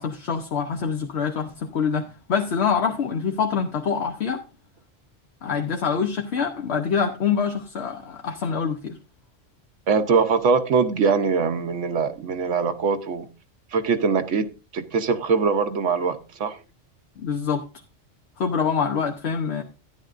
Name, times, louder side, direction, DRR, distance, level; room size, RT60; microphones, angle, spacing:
voice 1, 0.0-4.4 5.4-9.0 17.2-17.6 18.4-19.6, left 6 dB, 65° left, 1.1 m, -25 dB
voice 2, 9.9-13.3 13.7-14.5 14.7-16.6, right 5 dB, 80° right, 1.2 m, -22 dB
13.0 x 10.0 x 2.5 m
omnidirectional pair, 1.2 m